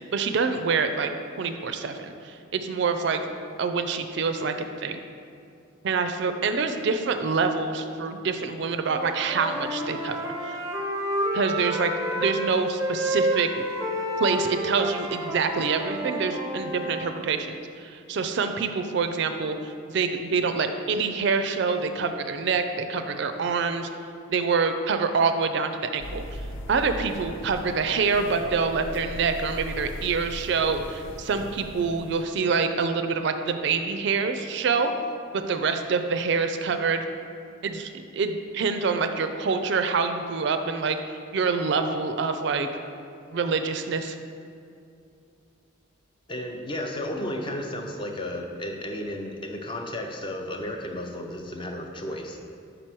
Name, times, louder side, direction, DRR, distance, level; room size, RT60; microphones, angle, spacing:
voice 1, 0.1-1.1 1.4-3.2 3.6-5.0 5.8-10.6 11.3-13.6 14.2-23.9 24.3-26.2 26.7-34.9 35.3-37.0 37.6-42.7 43.3-44.2, right 5 dB, 55° right, 8 dB, 0.4 m, -26 dB
Wind instrument woodwind instrument, 8.8-12.5 12.8-17.1, equal, 15° right, 0.6 m, -30 dB
sound 1, 26.0-32.3, left 1 dB, 70° left, 0.6 m, -39 dB
voice 2, 46.3-52.4, left 1 dB, 25° left, 2 dB, 0.5 m, -33 dB
5.0 x 4.4 x 6.0 m, 2.5 s
head